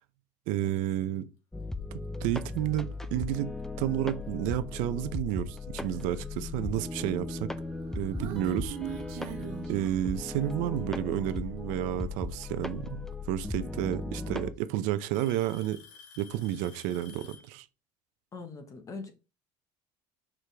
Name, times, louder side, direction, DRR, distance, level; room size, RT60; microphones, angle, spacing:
voice 1, 0.5-1.3 2.2-3.5 3.8-7.5 7.9-8.8 9.7-15.8 16.2-17.7, right 12 dB, 70° right, 0.6 m, -31 dB
sound 1, 1.5-14.5, left 3 dB, 5° left, 0.4 m, -37 dB
Alarm / Tick-tock, 3.6-3.8 4.7-4.8 5.6-5.7 7.4-7.5 8.7-8.8 10.0-10.5 12.2-12.3 13.6-13.7 14.0-14.5 15.1-17.6, left 6 dB, 85° left, 2.1 m, -52 dB
Human voice, 7.6-10.6, right 9 dB, 85° right, 1.1 m, -42 dB
voice 2, 8.8-9.6 14.1-14.4 18.3-19.1, left 4 dB, 25° left, 1.2 m, -44 dB
6.1 x 5.0 x 3.4 m
cardioid pair, 160°, 14 cm